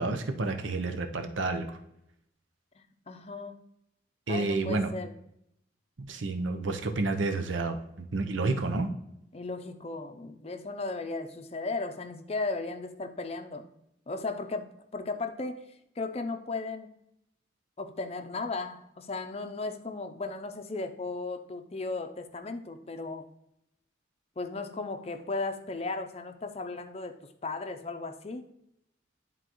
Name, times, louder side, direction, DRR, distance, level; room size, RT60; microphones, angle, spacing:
voice 1, 0.0-1.7 4.3-4.9 6.0-8.9, right 3 dB, 85° right, 6 dB, 0.8 m, -30 dB
voice 2, 2.8-3.6 4.3-5.1 9.3-13.7 14.1-15.7 16.0-16.9 17.8-23.3 24.4-28.5, left 3 dB, 35° left, 7 dB, 0.5 m, -36 dB
11.0 x 3.8 x 3.0 m, 0.79 s
head